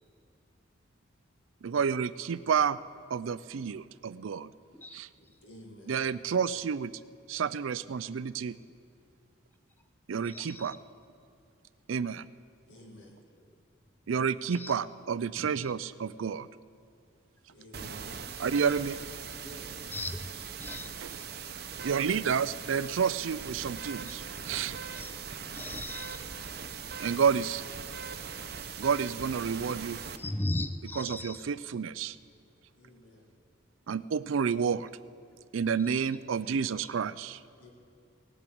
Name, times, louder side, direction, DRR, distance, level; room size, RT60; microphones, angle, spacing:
voice 1, 1.6-2.8 3.1-4.5 4.9-5.1 5.9-6.9 7.3-8.6 10.1-10.8 11.9-12.3 14.1-16.5 18.4-19.0 21.0-21.1 21.8-24.8 27.0-27.6 28.8-30.0 31.0-32.2 33.9-34.9 35.5-37.4, right 6 dB, 85° right, 16 dB, 0.4 m, -30 dB
voice 2, 5.4-6.1 12.7-13.2 17.5-18.2 19.4-19.9 32.7-33.4 37.5-37.7, equal, 65° left, 0 dB, 2.1 m, -52 dB
voice 3, 10.2-10.8 14.5-14.7 15.4-15.7 19.9-21.2 24.0-24.2 24.9-25.1 25.5-26.3 30.2-31.5 35.9-36.0 36.8-36.9, left 1 dB, 10° left, 10 dB, 0.4 m, -38 dB
sound 1, 17.7-30.2, right 6 dB, 50° right, 0.8 m, -40 dB
18.0 x 9.1 x 7.8 m, 2.4 s
head